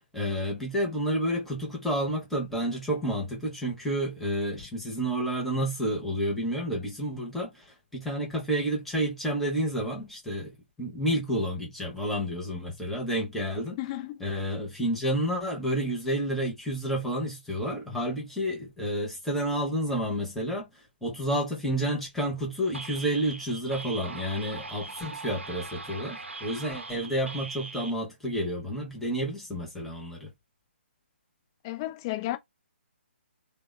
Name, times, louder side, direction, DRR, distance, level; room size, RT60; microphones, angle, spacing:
voice 1, 0.0-7.7 7.9-13.8 14.2-30.3, equal, 5° left, 0.7 m, -30 dB
voice 2, 13.8-14.2 31.6-32.4, left 16 dB, 20° left, 0.3 m, -33 dB
sound 1, 22.7-27.9, right 3 dB, 80° right, 0.7 m, -40 dB
3.2 x 2.1 x 2.2 m
figure-of-eight pair, 140°, 7 cm